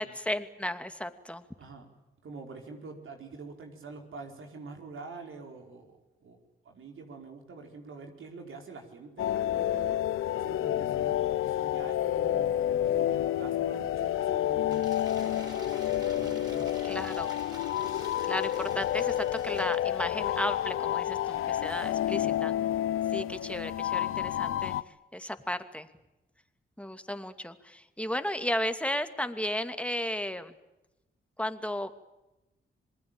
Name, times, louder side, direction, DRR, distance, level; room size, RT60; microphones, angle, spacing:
voice 1, 0.0-1.4 16.8-17.3 18.3-22.5 23.1-24.8 25.1-25.9 26.8-30.5 31.4-31.9, left 1 dB, 5° left, 9 dB, 2.5 m, -34 dB
voice 2, 2.2-6.4 6.6-10.0 10.4-17.2, right 4 dB, 75° right, 3 dB, 4.8 m, -46 dB
sound 1, 9.2-24.8, left 12 dB, 90° left, 0.8 m, -29 dB
Cheering / Applause / Crowd, 14.7-19.9, right 1 dB, 20° right, 6.4 m, -48 dB
27.0 x 20.0 x 9.0 m, 0.98 s
supercardioid pair, 55°, 21 cm